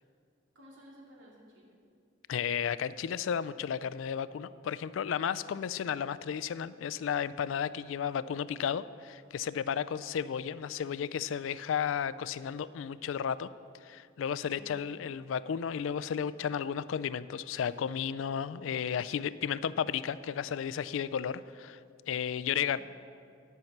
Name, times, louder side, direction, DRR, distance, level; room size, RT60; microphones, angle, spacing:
voice 1, 0.5-1.8 14.5-15.1 22.6-22.8, equal, 85° right, -2 dB, 2.3 m, -55 dB
voice 2, 2.3-13.5 13.8-21.8 22.1-22.8, left 8 dB, 90° left, 17 dB, 0.3 m, -33 dB
11.0 x 5.8 x 7.2 m, 2.3 s
head